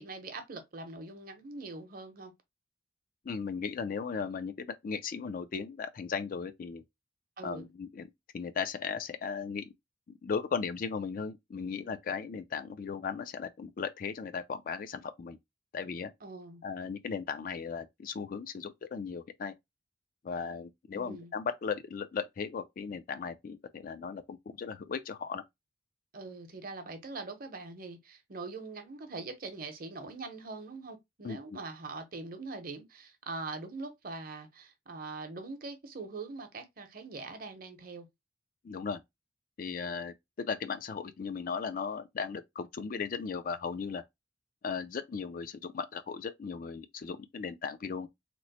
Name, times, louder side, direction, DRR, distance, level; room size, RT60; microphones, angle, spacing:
voice 1, 0.0-2.3 7.4-7.7 16.2-16.6 20.9-21.3 26.1-38.1, right 3 dB, 55° right, 0.7 m, -42 dB
voice 2, 3.2-6.8 7.4-8.1 8.3-9.7 10.2-15.4 15.7-16.1 16.6-19.5 20.2-25.4 31.2-31.6 38.6-39.0 39.6-44.0 44.6-48.1, left 5 dB, 50° left, 0.4 m, -37 dB
3.0 x 2.0 x 4.0 m
head